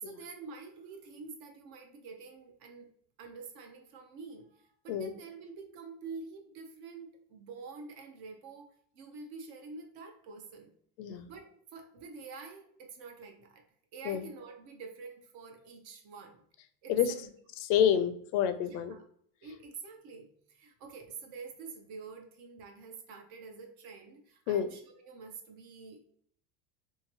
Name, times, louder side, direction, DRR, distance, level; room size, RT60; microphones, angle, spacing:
voice 1, 0.0-2.9 3.2-8.7 8.9-10.7 11.1-13.6 13.9-16.4 16.8-17.3 18.6-19.0 19.4-26.0, right 4 dB, 60° right, 3 dB, 0.7 m, -47 dB
voice 2, 17.6-19.0 24.5-24.7, left 9 dB, 65° left, 10 dB, 0.5 m, -28 dB
2.8 x 2.6 x 2.8 m, 0.62 s
supercardioid pair, 125°, 39 cm